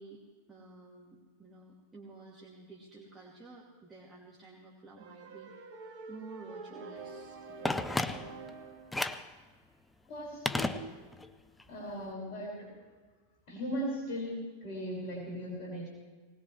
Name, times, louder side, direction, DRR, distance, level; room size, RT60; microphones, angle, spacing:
voice 1, 0.0-5.8 6.1-8.4, right 3 dB, 15° right, -4 dB, 2.5 m, -52 dB
sound 1, 5.0-9.0, right 4 dB, 50° right, 2.1 m, -47 dB
Telephone, 7.6-8.5 8.9-9.3 10.5-11.3 11.6-11.7, left 2 dB, 5° left, 0.7 m, -33 dB
voice 2, 10.1-11.0 11.7-12.7 13.5-15.9, equal, 45° left, -3 dB, 5.9 m, -38 dB
20.0 x 19.5 x 3.3 m, 1.4 s
figure-of-eight pair, 90°, 0 cm